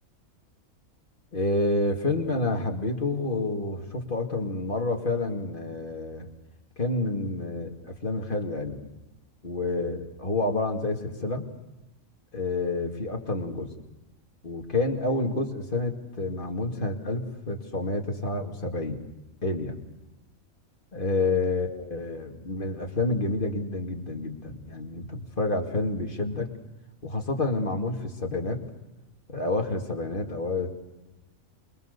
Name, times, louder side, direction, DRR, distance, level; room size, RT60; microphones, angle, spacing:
voice 1, 1.3-6.3 6.8-8.9 9.4-11.5 12.3-13.7 14.4-19.0 19.4-19.7 20.9-26.5 27.0-28.6 29.3-30.7, left 2 dB, 40° left, 2 dB, 2.5 m, -29 dB
26.0 x 21.5 x 6.7 m, 1.0 s
omnidirectional pair, 1.4 m